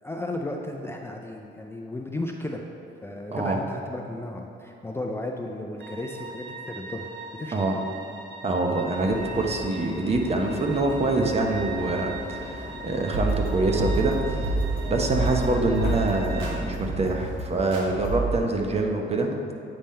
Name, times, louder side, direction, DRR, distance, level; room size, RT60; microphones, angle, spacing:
voice 1, 0.0-2.6 3.0-7.7, left 1 dB, 10° left, 1 dB, 0.4 m, -34 dB
sound 1, 5.8-16.6, right 4 dB, 75° right, 0.8 m, -40 dB
voice 2, 8.4-14.4 14.8-19.5, right 2 dB, 30° right, 2 dB, 0.8 m, -25 dB
sound 2, 8.9-17.4, left 2 dB, 65° left, 1.2 m, -38 dB
sound 3, 13.1-18.4, right 2 dB, 90° right, 1.2 m, -28 dB
8.7 x 3.7 x 4.2 m, 2.8 s
cardioid pair, 90°, 20 cm